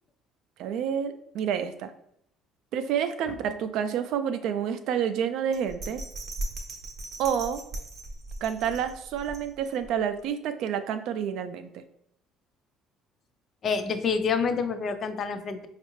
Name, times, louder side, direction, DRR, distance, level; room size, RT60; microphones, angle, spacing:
voice 1, 0.6-1.9 2.7-6.0 7.2-7.6 8.4-11.8, right 8 dB, 70° right, 9 dB, 0.3 m, -29 dB
Bell, 5.5-9.9 10.3-10.4, right 2 dB, 45° right, 0.7 m, -38 dB
voice 2, 13.6-15.7, left 5 dB, 45° left, 8 dB, 0.4 m, -28 dB
4.3 x 2.4 x 3.1 m, 0.72 s
cardioid pair, 100°, 0 cm